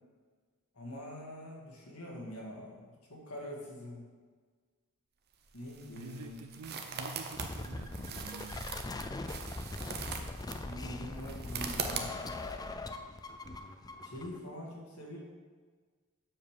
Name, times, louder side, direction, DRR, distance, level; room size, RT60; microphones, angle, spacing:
voice 1, 0.7-4.1 5.5-6.4 10.6-12.4 14.0-15.2, left 1 dB, 85° left, -3 dB, 2.2 m, -44 dB
sound 1, 5.3-12.5, right 6 dB, 50° right, 0.8 m, -42 dB
voice 2, 6.0-8.8, right 3 dB, 75° right, 7 dB, 0.4 m, -48 dB
sound 2, 7.3-14.4, left 2 dB, 15° left, 0.4 m, -41 dB
7.2 x 5.1 x 6.6 m, 1.5 s
head